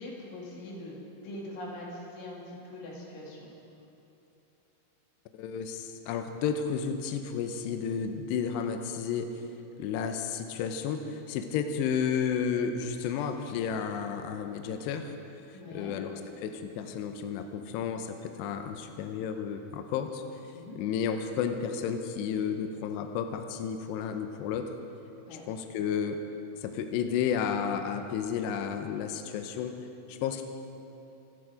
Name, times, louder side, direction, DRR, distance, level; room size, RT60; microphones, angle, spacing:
voice 1, 0.0-3.5 15.5-16.0 20.5-20.8 25.3-25.4, left 1 dB, 65° left, -4 dB, 5.1 m, -42 dB
voice 2, 5.3-9.3 9.8-15.1 15.7-16.1 16.4-20.2 20.8-24.7 25.5-26.2 26.6-30.4, left 7 dB, 80° left, 6 dB, 2.5 m, -32 dB
26.0 x 11.0 x 5.0 m, 3.0 s
omnidirectional pair, 5.9 m